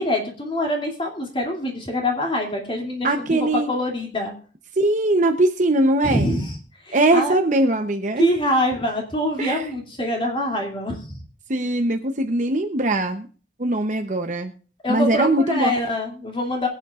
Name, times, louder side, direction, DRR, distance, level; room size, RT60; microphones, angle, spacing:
voice 1, 0.0-4.3 6.0-6.6 6.9-7.4 8.2-11.2 14.8-16.7, left 1 dB, 30° left, 1 dB, 2.7 m, -25 dB
voice 2, 3.0-3.7 4.8-6.3 6.9-8.3 9.4-9.6 11.5-13.3 13.6-14.5 14.9-15.7, right 1 dB, 45° right, 5 dB, 0.8 m, -21 dB
23.5 x 8.3 x 2.5 m, 0.41 s
head